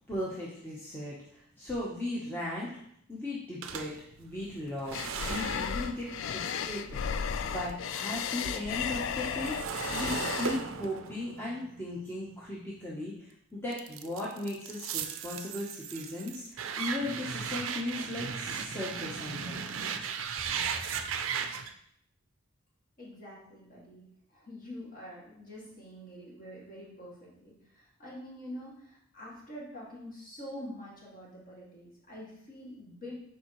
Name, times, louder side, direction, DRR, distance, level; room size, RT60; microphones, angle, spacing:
voice 1, 0.1-2.8 3.1-19.6 20.9-21.0, left 1 dB, 10° left, -6 dB, 0.8 m, -37 dB
sound 1, 3.6-7.9 8.2-13.1 13.7-21.7, right 6 dB, 60° right, 0.4 m, -37 dB
sound 2, 4.9-10.6, left 7 dB, 55° left, 0.3 m, -34 dB
voice 2, 23.0-24.0 24.3-33.2, equal, 40° left, -5 dB, 2.0 m, -46 dB
7.1 x 4.7 x 3.0 m, 0.70 s
head